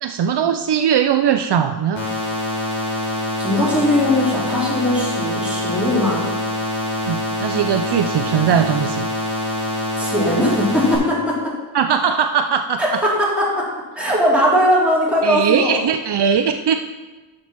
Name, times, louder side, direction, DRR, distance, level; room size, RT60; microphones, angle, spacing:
voice 1, 0.0-2.1 7.1-9.1 11.7-12.8 15.2-16.8, right 8 dB, 65° right, 7 dB, 0.5 m, -19 dB
sound 1, 1.9-10.9, left 1 dB, 40° left, 3.1 m, -25 dB
voice 2, 3.1-6.2 10.0-11.5 12.8-13.7 13.9-15.8, left 1 dB, 5° right, -6 dB, 2.9 m, -19 dB
7.0 x 6.4 x 5.9 m, 1.2 s
wide cardioid pair, 110°, 45 cm